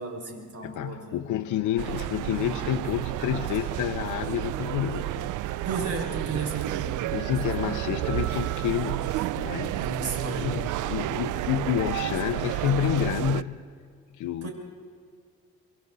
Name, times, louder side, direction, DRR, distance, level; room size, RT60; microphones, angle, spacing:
voice 1, 0.0-1.4 5.6-7.0 9.7-10.6 14.4-14.5, right 3 dB, 50° right, 0 dB, 5.9 m, -34 dB
voice 2, 0.6-5.3 6.3-6.5 7.1-9.8 10.4-13.6 14.2-14.5, left 10 dB, 85° left, 5 dB, 0.9 m, -29 dB
sound 1, 1.8-13.4, right 15 dB, 80° right, 0.6 m, -31 dB
27.0 x 25.0 x 4.1 m, 2.2 s
cardioid pair, 90°, 30 cm